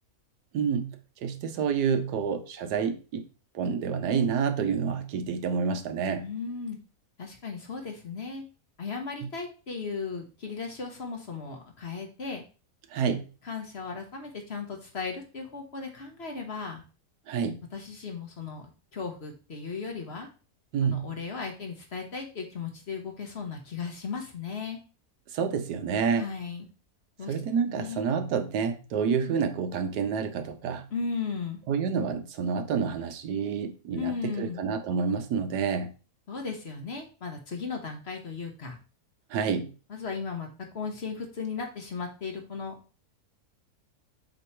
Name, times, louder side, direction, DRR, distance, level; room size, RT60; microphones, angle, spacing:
voice 1, 0.5-3.2 3.5-6.2 12.9-13.3 17.3-17.6 20.7-21.1 25.3-26.2 27.3-30.9 31.7-35.9 39.3-39.7, right 6 dB, 85° right, 8 dB, 1.4 m, -28 dB
voice 2, 6.2-6.8 7.2-8.4 8.8-12.4 13.4-16.8 17.7-20.3 20.8-24.8 26.2-26.7 27.2-27.3 27.7-28.1 29.0-29.4 30.9-31.6 33.9-34.6 36.3-38.8 39.9-40.5 40.7-42.7, left 5 dB, 45° left, 2 dB, 1.3 m, -36 dB
7.6 x 3.0 x 4.4 m, 0.35 s
omnidirectional pair, 1.7 m